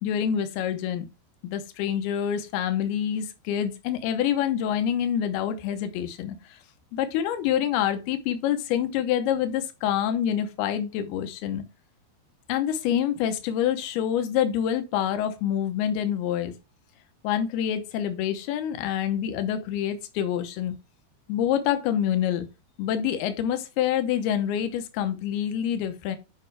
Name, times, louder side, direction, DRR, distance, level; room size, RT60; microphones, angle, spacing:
voice 1, 0.0-1.1 1.4-6.6 6.9-11.6 12.5-16.6 17.2-20.8 21.3-22.5 22.8-26.2, left 9 dB, 85° left, 2.9 m, -26 dB
8.8 x 5.3 x 3.3 m
omnidirectional pair, 4.4 m